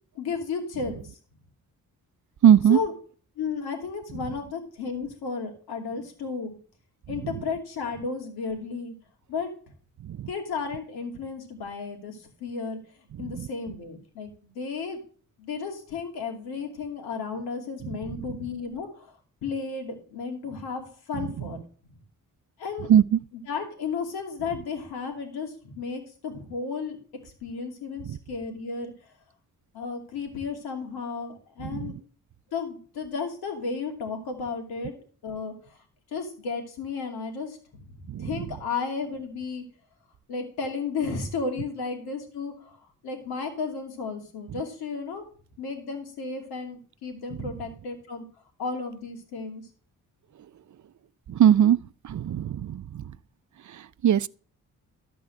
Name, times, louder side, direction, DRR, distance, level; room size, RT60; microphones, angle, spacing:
voice 1, 0.1-1.2 2.7-2.9 3.4-6.5 7.1-8.9 9.3-9.5 10.3-12.8 13.2-15.0 15.4-19.1 19.4-21.6 22.6-22.9 23.5-27.0 27.2-28.9 29.7-31.9 32.5-34.9 35.2-35.8 36.1-39.6 40.3-42.8 43.0-45.2 45.6-48.2 48.6-49.6, left 5 dB, 90° left, 2.6 m, -33 dB
voice 2, 2.4-2.8 10.1-10.3 13.4-13.5 22.9-23.0 28.1-28.2 31.7-31.9 38.1-38.3 51.3-51.8 52.0-53.0 54.0-54.3, right 9 dB, 50° right, 0.6 m, -19 dB
13.0 x 4.6 x 7.7 m
supercardioid pair, 45°, 37 cm